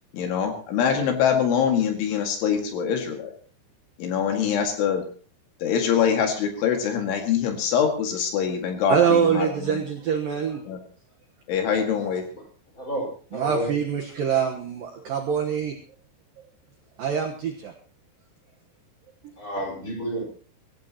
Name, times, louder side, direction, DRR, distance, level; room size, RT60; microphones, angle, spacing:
voice 1, 0.1-3.3 4.0-5.0 5.6-9.8 10.7-10.8 11.5-12.2, left 7 dB, 70° left, 4 dB, 4.4 m, -24 dB
voice 2, 8.9-10.6 13.3-15.7 17.0-17.7, right 7 dB, 70° right, 2 dB, 2.2 m, -24 dB
voice 3, 12.0-12.4 12.7-13.7 19.4-20.2, right 1 dB, 15° left, -1 dB, 4.8 m, -31 dB
25.0 x 14.5 x 3.0 m, 0.40 s
omnidirectional pair, 5.8 m